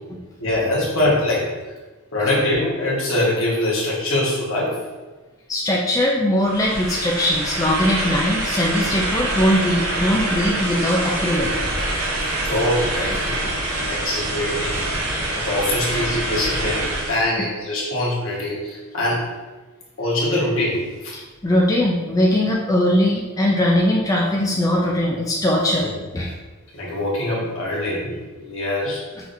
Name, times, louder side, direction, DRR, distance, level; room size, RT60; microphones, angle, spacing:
voice 1, 0.4-1.5 2.1-4.8 12.2-13.3 13.7-14.9 15.3-19.3 20.0-21.1 25.8-26.0 26.7-29.0, left 1 dB, 65° left, -6 dB, 1.3 m, -23 dB
voice 2, 5.5-11.5 13.3-13.4 14.9-15.3 15.6-16.0 16.3-16.5 21.4-26.3, left 1 dB, 15° left, -3 dB, 0.3 m, -20 dB
sound 1, 6.4-17.3, right 1 dB, 70° right, 0.9 m, -25 dB
6.0 x 2.8 x 2.6 m, 1.2 s
head